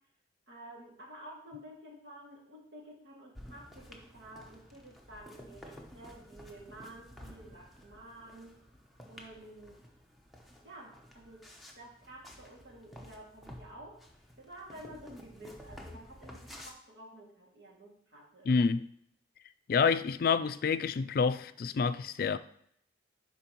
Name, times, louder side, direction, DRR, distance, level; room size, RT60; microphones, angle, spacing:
voice 1, 0.5-8.6 9.1-9.8 10.6-11.5 11.8-14.0 14.4-18.5, right 1 dB, 65° right, 2.1 m, -51 dB
sound 1, 3.3-16.7, left 1 dB, ahead, 0.8 m, -52 dB
voice 2, 18.5-18.9 19.7-22.4, left 5 dB, 55° left, 0.3 m, -28 dB
10.5 x 4.5 x 3.0 m
head